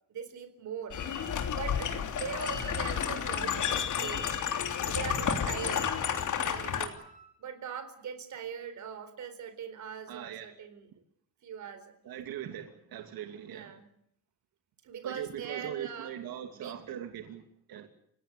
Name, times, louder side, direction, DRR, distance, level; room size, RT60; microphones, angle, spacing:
voice 1, 0.1-1.0 1.5-4.3 4.8-5.9 6.4-7.0 7.4-10.9 11.4-11.9 13.5-13.8 14.8-16.1 16.6-16.8, right 7 dB, 55° right, 4.2 m, -41 dB
sound 1, 0.9-6.9, left 8 dB, 55° left, 3.2 m, -31 dB
Wind instrument woodwind instrument, 2.0-7.4, right 4 dB, 20° right, 4.8 m, -55 dB
voice 2, 10.1-10.5 12.0-13.8 15.0-17.9, right 10 dB, 85° right, 2.6 m, -41 dB
29.5 x 17.0 x 8.2 m
cardioid pair, 165°, 35 cm